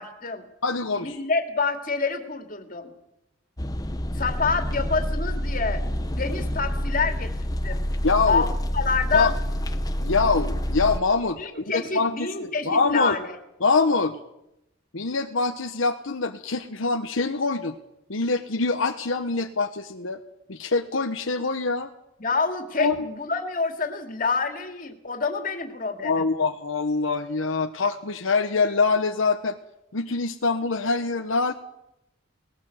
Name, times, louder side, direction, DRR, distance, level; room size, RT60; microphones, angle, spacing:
voice 1, 0.0-0.5 1.0-2.9 4.1-5.8 6.1-7.9 8.3-9.3 10.1-10.2 11.4-13.3 22.2-26.2, left 4 dB, 40° left, 5 dB, 2.6 m, -27 dB
voice 2, 0.6-1.1 8.0-8.4 9.1-9.3 10.0-13.1 13.6-14.2 14.9-17.7 18.1-20.2 20.5-21.9 22.8-22.9 26.0-29.6 29.9-31.5, left 4 dB, 75° left, 5 dB, 1.2 m, -24 dB
sound 1, 3.6-11.0, equal, 20° left, 1.0 m, -28 dB
19.5 x 17.5 x 7.9 m, 0.85 s
head